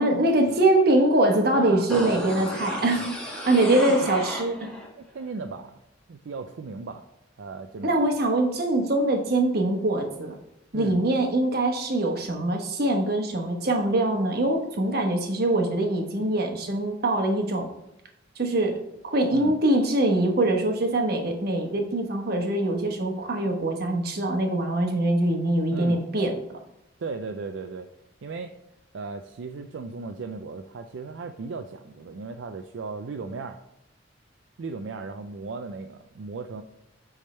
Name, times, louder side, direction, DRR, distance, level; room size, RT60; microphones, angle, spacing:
voice 1, 0.0-3.1 3.4-4.7 7.8-10.3 10.7-17.7 18.4-18.8 19.0-26.3, right 1 dB, 55° right, 3 dB, 1.1 m, -23 dB
voice 2, 1.5-2.5 2.8-3.1 3.5-3.9 5.0-5.7 6.1-7.0 7.4-8.1 10.7-11.0 19.3-19.6 25.7-26.0 27.0-27.9 28.2-28.5 28.9-33.6 34.6-36.6, right 4 dB, 70° right, 6 dB, 0.4 m, -36 dB
sound 1, 1.9-4.9 5.2-5.3, equal, 5° left, 1.6 m, -33 dB
8.3 x 3.6 x 4.3 m, 0.85 s
head